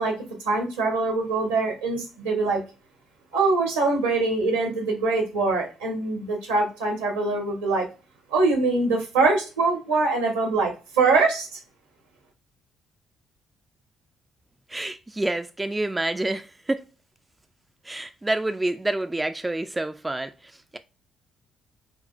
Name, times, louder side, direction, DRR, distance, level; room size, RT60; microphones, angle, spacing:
voice 1, 0.0-2.6 3.3-7.9 8.3-11.6, right 3 dB, 80° right, 1.1 m, -23 dB
voice 2, 14.7-16.9 17.8-20.8, right 2 dB, 15° right, 0.3 m, -28 dB
5.0 x 2.4 x 2.2 m
figure-of-eight pair, 45°, 0 cm